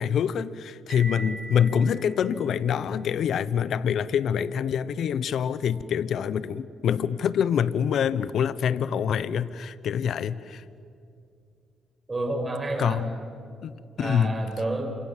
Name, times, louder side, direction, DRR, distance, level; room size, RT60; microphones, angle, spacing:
voice 1, 0.0-10.6 12.8-13.1 13.6-14.4, left 8 dB, 65° left, 16 dB, 1.0 m, -26 dB
Piano, 0.9-2.8, right 2 dB, 40° right, 7.8 m, -41 dB
voice 2, 12.1-13.0 14.0-15.1, right 2 dB, 25° right, 5 dB, 6.1 m, -30 dB
29.0 x 26.5 x 7.5 m, 2.5 s
cardioid pair, 90°, 0 cm